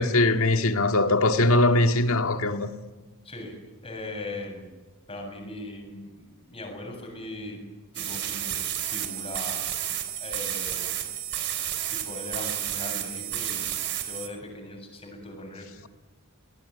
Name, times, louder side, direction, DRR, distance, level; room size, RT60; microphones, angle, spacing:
voice 1, 0.0-2.7, left 2 dB, 65° left, 2.0 m, -21 dB
voice 2, 3.2-3.6 3.8-4.7 5.1-7.6 7.9-11.2 11.9-13.7 14.0-15.7, left 2 dB, 25° left, 7.6 m, -39 dB
sound 1, 7.9-14.3, right 11 dB, 55° right, 3.4 m, -31 dB
24.0 x 20.0 x 9.7 m
head